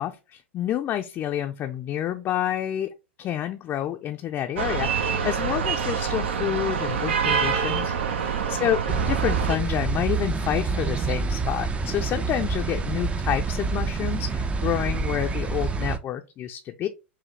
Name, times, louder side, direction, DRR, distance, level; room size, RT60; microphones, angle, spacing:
voice 1, 0.0-2.9 3.2-16.9, left 11 dB, 35° left, 0.5 m, -29 dB
sound 1, 4.6-9.6, right 6 dB, 70° right, 0.8 m, -26 dB
sound 2, 8.9-16.0, right 4 dB, 20° right, 0.5 m, -27 dB
4.8 x 2.7 x 3.2 m
hypercardioid pair, 100°, 6 cm